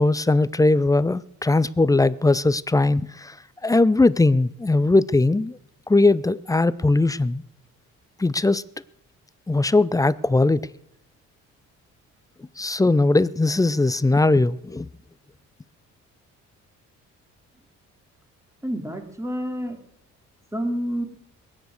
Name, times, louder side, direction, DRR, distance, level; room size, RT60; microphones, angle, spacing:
voice 1, 0.0-3.3 3.6-5.6 5.9-7.4 8.2-8.6 9.5-10.7 12.6-14.9, left 2 dB, 10° left, 0.5 m, -19 dB
voice 2, 18.6-19.8 20.5-21.1, equal, 10° right, 3.0 m, -28 dB
21.5 x 9.6 x 6.6 m
cardioid pair, 90°, 30 cm